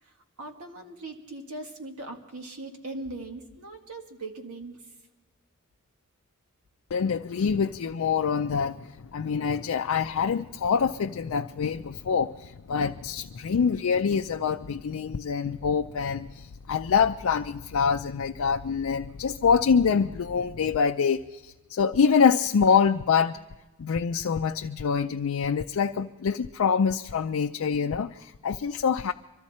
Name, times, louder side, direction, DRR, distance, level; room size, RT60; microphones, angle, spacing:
voice 1, 0.0-4.9, right 2 dB, 85° right, 1.9 m, -40 dB
voice 2, 6.9-23.4 23.8-29.1, left 6 dB, 70° left, 0.4 m, -25 dB
24.5 x 13.5 x 4.2 m
head